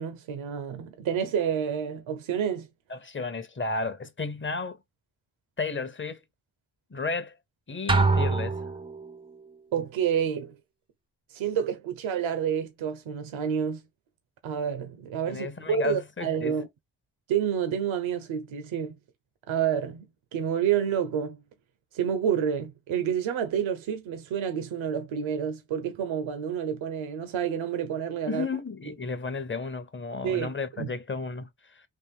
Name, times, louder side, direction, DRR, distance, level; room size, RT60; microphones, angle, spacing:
voice 1, 0.0-2.7 9.7-10.5 11.3-13.8 14.4-16.7 17.3-18.9 19.5-20.1 20.3-21.4 21.9-28.5 30.2-30.5 30.8-30.9, right 8 dB, 75° right, 0.7 m, -29 dB
voice 2, 2.9-4.8 5.6-6.2 6.9-7.3 7.7-8.6 15.3-16.6 28.3-31.8, left 4 dB, 25° left, 0.7 m, -33 dB
sound 1, 7.9-9.3, right 3 dB, 10° right, 0.4 m, -25 dB
3.5 x 2.5 x 3.5 m
cardioid pair, 55°, 47 cm